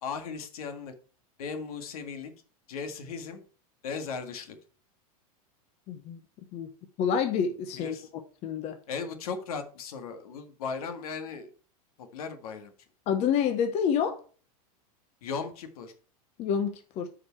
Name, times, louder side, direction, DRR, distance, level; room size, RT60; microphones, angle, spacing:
voice 1, 0.0-0.9 1.4-2.3 2.7-3.4 3.8-4.6 7.8-8.1 8.9-11.5 12.0-12.7 15.2-15.9, left 5 dB, 75° left, 1.8 m, -37 dB
voice 2, 5.9-6.2 6.5-6.7 7.0-7.9 8.4-8.8 13.1-14.2 16.4-17.1, left 7 dB, 35° left, 0.9 m, -28 dB
9.2 x 5.0 x 4.4 m
supercardioid pair, 145°, 19 cm